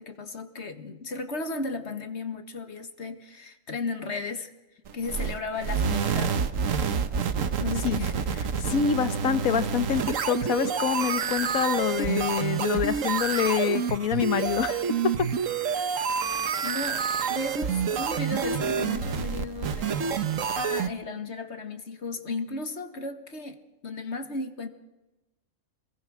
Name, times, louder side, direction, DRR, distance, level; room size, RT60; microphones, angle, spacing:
voice 1, 0.0-4.5 4.9-6.5 7.6-8.1 9.2-9.4 16.6-20.1 20.6-23.6 23.8-24.7, left 3 dB, 55° left, 8 dB, 1.9 m, -35 dB
sound 1, 4.9-20.9, right 6 dB, 70° right, 1.4 m, -28 dB
voice 2, 8.6-14.8 15.8-15.9, left 8 dB, 85° left, 13 dB, 1.5 m, -26 dB
27.0 x 21.0 x 6.2 m, 1.0 s
omnidirectional pair, 1.4 m